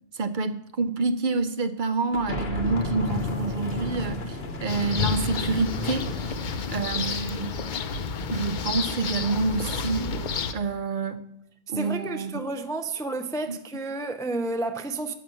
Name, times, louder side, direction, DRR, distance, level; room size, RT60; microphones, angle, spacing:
voice 1, 0.1-7.5 8.3-10.1 10.5-11.2 11.7-12.3 13.5-13.6, right 4 dB, 55° right, 0.7 m, -28 dB
sound 1, 2.1-7.1, left 2 dB, 70° left, 1.4 m, -33 dB
sound 2, 4.7-10.5, left 5 dB, 55° left, 0.7 m, -30 dB
voice 2, 11.7-15.1, right 2 dB, 5° left, 0.3 m, -31 dB
9.3 x 5.5 x 7.6 m
omnidirectional pair, 1.1 m